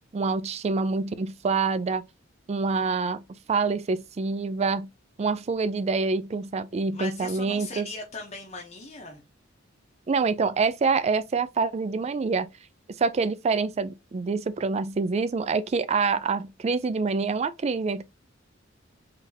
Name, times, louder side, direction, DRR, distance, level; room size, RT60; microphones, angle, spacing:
voice 1, 0.1-2.0 2.5-3.2 3.5-4.9 5.2-7.9 10.1-12.5 13.0-18.0, right 4 dB, 35° right, 0.3 m, -26 dB
voice 2, 6.9-9.2, left 3 dB, 35° left, 0.8 m, -39 dB
3.9 x 3.4 x 2.7 m
head